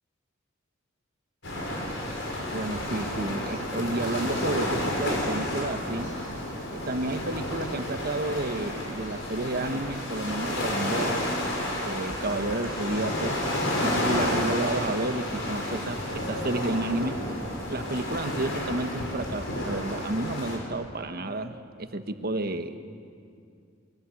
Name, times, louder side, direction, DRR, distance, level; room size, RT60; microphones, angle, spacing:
sound 1, 1.4-20.6, left 1 dB, 65° left, 5.9 m, -31 dB
voice 1, 2.5-6.2 6.7-11.3 11.6-13.4 13.8-17.2 17.7-22.8, right 2 dB, 50° right, 8 dB, 1.3 m, -31 dB
23.0 x 22.5 x 8.5 m, 2.4 s
head